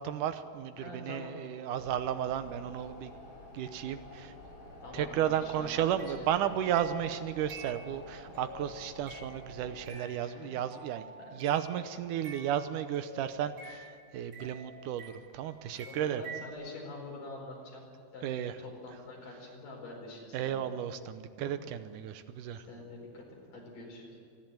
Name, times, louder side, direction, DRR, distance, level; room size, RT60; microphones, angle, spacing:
voice 1, 0.0-3.1 3.5-4.3 4.9-16.2 18.2-18.6 20.3-22.7, right 10 dB, 80° right, 11 dB, 2.4 m, -33 dB
voice 2, 0.8-1.3 4.8-6.3 10.2-10.5 11.3-11.4 15.9-17.9 18.1-18.3 18.6-20.6 21.4-21.6 22.7-24.2, left 2 dB, 90° left, 0 dB, 6.2 m, -45 dB
sound 1, 1.7-9.8, left 1 dB, 50° left, 9.1 m, -50 dB
sound 2, 5.9-11.8 12.2-15.5 15.8-16.5, right 3 dB, 55° right, 3.9 m, -49 dB
27.5 x 11.0 x 9.0 m, 2.3 s
omnidirectional pair, 3.7 m